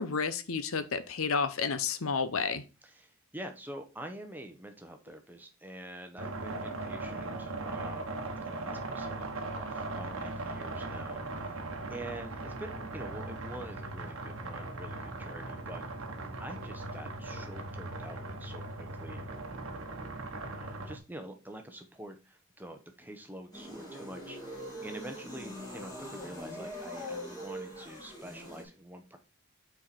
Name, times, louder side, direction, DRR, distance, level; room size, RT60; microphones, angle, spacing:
voice 1, 0.0-2.6, left 5 dB, 70° left, 12 dB, 0.7 m, -31 dB
voice 2, 2.8-15.9 16.4-19.3 20.6-29.2, right 1 dB, 10° right, 5 dB, 0.8 m, -46 dB
sound 1, 6.2-21.0, right 2 dB, 65° right, 1.0 m, -39 dB
sound 2, 23.5-28.6, equal, 15° left, 2.5 m, -42 dB
6.4 x 4.7 x 4.3 m, 0.30 s
head